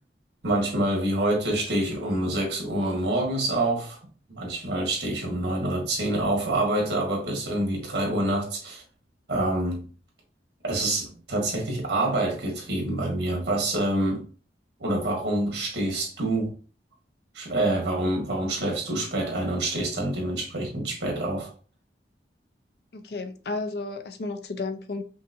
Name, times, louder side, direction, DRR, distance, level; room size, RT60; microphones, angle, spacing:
voice 1, 0.4-4.0 4.3-8.8 9.3-9.8 10.6-14.2 14.8-16.5 17.3-21.5, right 1 dB, 70° right, 1.7 m, -26 dB
voice 2, 22.9-25.0, left 3 dB, 65° left, 0.5 m, -32 dB
5.3 x 2.5 x 2.6 m
head